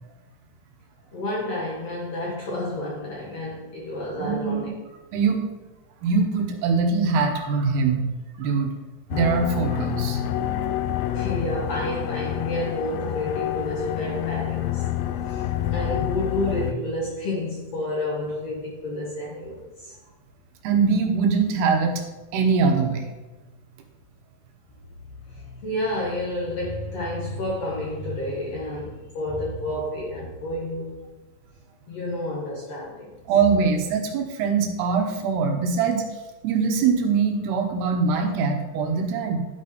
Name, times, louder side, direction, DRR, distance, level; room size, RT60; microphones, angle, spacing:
voice 1, 1.1-4.7 11.1-14.9 15.2-20.0 25.1-30.9 31.9-33.2, left 1 dB, 60° left, -4 dB, 1.9 m, -30 dB
voice 2, 4.2-4.7 5.1-5.4 6.0-8.0 8.4-8.7 9.1-10.2 20.6-22.0 22.3-23.1 33.3-36.0 36.4-39.5, right 5 dB, 85° right, 3 dB, 3.1 m, -22 dB
sound 1, 9.1-16.7, left 11 dB, 85° left, 2.0 m, -28 dB
12.0 x 4.2 x 5.1 m, 1.1 s
omnidirectional pair, 4.6 m